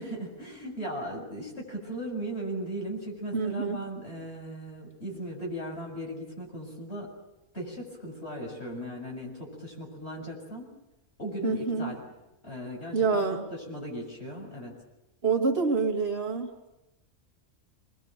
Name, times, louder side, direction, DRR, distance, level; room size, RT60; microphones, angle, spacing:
voice 1, 0.0-7.1 7.5-10.7 11.2-12.0 12.4-13.2 13.7-14.8, right 1 dB, 55° left, -1 dB, 7.2 m, -37 dB
voice 2, 3.3-3.8 11.4-11.9 12.9-13.5 15.2-16.7, right 4 dB, 50° right, 2 dB, 2.4 m, -27 dB
26.0 x 20.5 x 8.0 m, 0.97 s
omnidirectional pair, 1.3 m